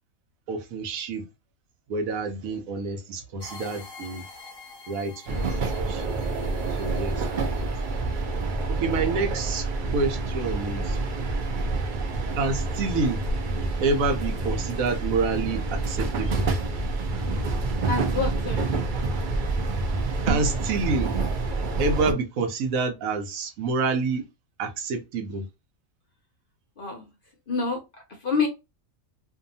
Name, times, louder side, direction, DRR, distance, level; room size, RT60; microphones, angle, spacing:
voice 1, 0.5-1.2 1.9-4.2 4.9-6.1 6.8-7.7 8.7-9.7 9.9-11.0 12.3-13.2 13.8-16.5 20.2-21.2 21.8-24.2 24.6-25.5, right 3 dB, 80° right, 1.0 m, -28 dB
sound 1, 3.4-8.5, left 4 dB, 20° left, 0.9 m, -47 dB
sound 2, 5.3-22.1, right 3 dB, 60° right, 0.5 m, -27 dB
voice 2, 17.9-18.7 26.8-27.1 27.5-27.8 28.2-28.5, left 4 dB, 55° left, 0.6 m, -27 dB
2.7 x 2.3 x 2.6 m
omnidirectional pair, 1.4 m